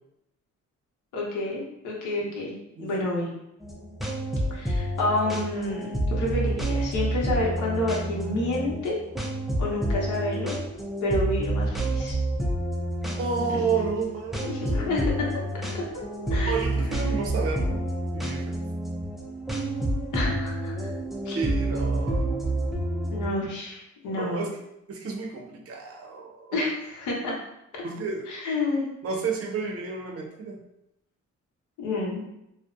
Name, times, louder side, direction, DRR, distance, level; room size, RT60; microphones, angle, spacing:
voice 1, 1.1-3.3 4.5-9.0 9.6-10.5 11.0-12.2 13.5-13.6 14.4-15.3 15.7-16.0 16.3-16.6 20.1-20.7 21.3-21.4 23.1-24.5 26.5-27.4 28.3-28.9 31.8-32.2, left 2 dB, 80° left, -3 dB, 0.8 m, -29 dB
voice 2, 2.7-3.1 13.2-15.1 16.4-17.8 18.1-18.6 21.2-22.2 24.1-24.5 24.9-26.6 27.8-28.3 29.0-30.6, right 5 dB, 50° right, 1 dB, 0.6 m, -31 dB
sound 1, 3.6-23.3, right 1 dB, ahead, 0.3 m, -29 dB
2.5 x 2.1 x 2.4 m, 0.83 s
cardioid pair, 90°, 30 cm